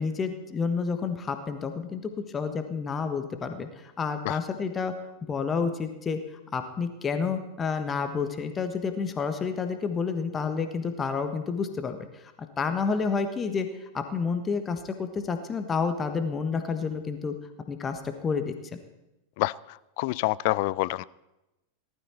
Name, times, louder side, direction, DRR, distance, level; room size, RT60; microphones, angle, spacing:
voice 1, 0.0-2.0 2.3-4.9 5.2-17.3 17.7-18.5, left 5 dB, 20° left, 7 dB, 1.3 m, -30 dB
voice 2, 20.0-21.0, left 20 dB, 45° left, 20 dB, 0.4 m, -26 dB
18.5 x 12.5 x 4.4 m, 0.94 s
figure-of-eight pair, 90°, 0 cm